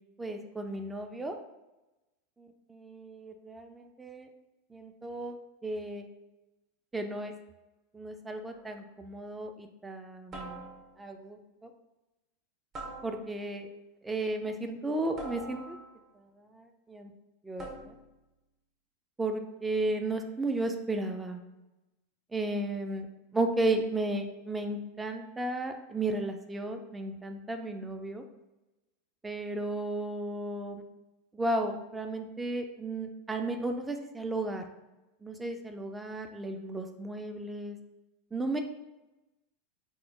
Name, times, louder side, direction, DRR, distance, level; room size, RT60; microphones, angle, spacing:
voice 1, 0.2-1.4 2.4-4.3 4.7-5.4 5.6-6.1 6.9-7.3 7.9-11.7 13.0-13.6 14.0-15.8 16.4-17.1 17.4-17.9 19.2-21.4 22.3-23.1 23.3-28.2 29.2-30.8 31.3-34.6 35.2-37.8 38.3-38.6, right 2 dB, 10° right, 5 dB, 0.4 m, -34 dB
sound 1, 8.5-8.9 10.3-11.1 12.7-13.6 15.2-16.1 17.6-18.2, right 2 dB, 35° right, 0.8 m, -44 dB
2.9 x 2.0 x 3.4 m, 1.0 s
hypercardioid pair, 90°, 0 cm